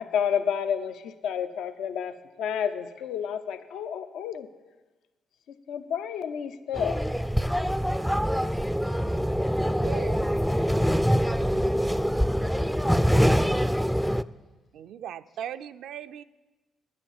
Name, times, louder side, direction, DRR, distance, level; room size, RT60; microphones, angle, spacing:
voice 1, 0.0-4.5 5.5-7.0, left 8 dB, 80° left, 10 dB, 0.6 m, -30 dB
sound 1, 6.7-14.2, equal, ahead, 0.3 m, -24 dB
voice 2, 8.7-13.6, left 5 dB, 60° left, 4 dB, 0.9 m, -49 dB
voice 3, 9.8-10.3 14.7-16.2, right 10 dB, 80° right, 11 dB, 0.4 m, -38 dB
10.0 x 9.5 x 7.2 m, 1.2 s
cardioid pair, 90°, 0 cm